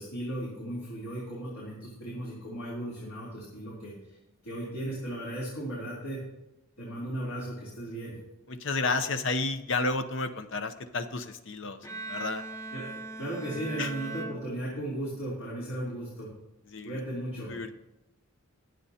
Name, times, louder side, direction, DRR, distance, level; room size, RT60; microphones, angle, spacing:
voice 1, 0.0-4.2 4.4-6.2 6.8-8.2 12.7-16.3 16.8-17.5, right 1 dB, 80° left, -6 dB, 3.3 m, -36 dB
voice 2, 8.5-11.8 12.1-12.4 13.8-13.9 16.7-17.0 17.5-17.7, left 3 dB, 60° left, 10 dB, 0.7 m, -31 dB
Bowed string instrument, 11.8-15.2, right 2 dB, 15° left, 0.7 m, -40 dB
21.5 x 7.8 x 2.8 m, 0.95 s
head